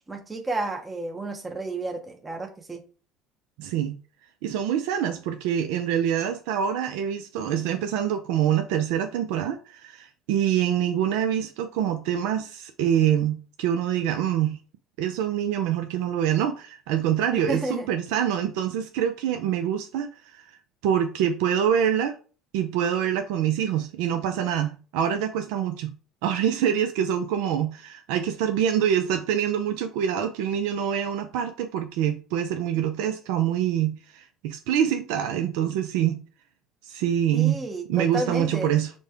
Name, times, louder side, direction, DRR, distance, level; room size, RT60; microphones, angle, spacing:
voice 1, 0.1-2.8 17.3-17.9 37.3-38.7, right 2 dB, 15° right, 0.6 m, -31 dB
voice 2, 3.6-4.0 4.4-14.6 15.0-20.6 20.8-22.2 22.5-25.9 26.2-36.2 36.8-38.9, right 9 dB, 80° right, 0.4 m, -25 dB
5.2 x 2.1 x 3.4 m
supercardioid pair, 90°, 0 cm